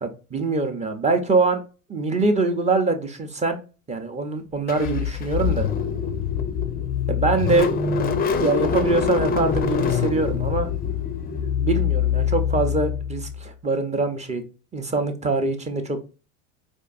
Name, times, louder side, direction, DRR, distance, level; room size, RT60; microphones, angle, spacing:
voice 1, 0.0-1.6 1.9-3.6 3.9-5.7 7.1-7.7 8.4-10.7 11.6-14.4 14.7-16.0, right 3 dB, 15° right, 6 dB, 0.7 m, -23 dB
Car / Engine starting, 4.7-13.4, left 7 dB, 25° left, 0.5 m, -24 dB
4.4 x 2.6 x 2.5 m, 0.33 s
hypercardioid pair, 85°, 41 cm